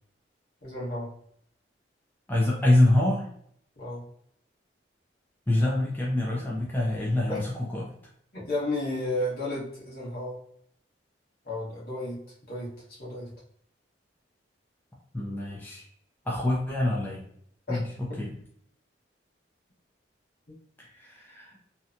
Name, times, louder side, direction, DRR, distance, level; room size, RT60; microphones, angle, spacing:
voice 1, 0.6-1.1 3.8-4.0 6.3-6.5 7.3-7.4 8.3-10.4 11.4-12.2 12.5-13.3 17.7-17.8 20.5-20.6, left 1 dB, 55° left, -6 dB, 1.1 m, -33 dB
voice 2, 2.3-3.3 5.5-7.9 15.1-15.8 16.3-17.2 17.7-17.8 18.2-18.3 20.8-21.6, left 1 dB, 10° left, -4 dB, 0.4 m, -25 dB
2.7 x 2.2 x 2.5 m, 0.66 s
head